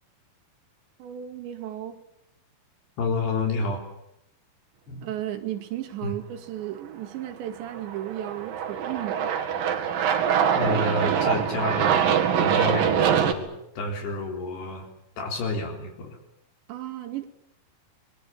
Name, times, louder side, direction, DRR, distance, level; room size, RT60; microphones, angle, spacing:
voice 1, 1.0-2.0 5.0-9.3 16.7-17.3, right 12 dB, 85° right, 7 dB, 4.3 m, -34 dB
voice 2, 3.0-3.8 4.9-5.1 6.0-6.1 10.6-14.9 15.2-16.2, left 3 dB, 70° left, 2 dB, 5.8 m, -30 dB
Aircraft, 7.6-13.3, right 8 dB, 60° right, 3.6 m, -24 dB
25.5 x 22.0 x 9.1 m, 0.79 s
omnidirectional pair, 5.0 m